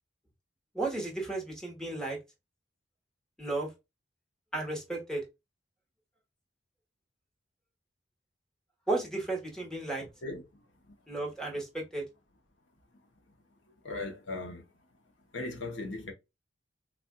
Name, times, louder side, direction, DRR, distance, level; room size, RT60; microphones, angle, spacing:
voice 1, 0.7-2.2 3.4-3.7 4.5-5.2 8.9-10.0 11.1-12.0, right 2 dB, 5° left, 1.2 m, -33 dB
voice 2, 13.8-14.6 15.3-16.1, left 2 dB, 75° left, 1.0 m, -37 dB
4.1 x 2.4 x 2.2 m
head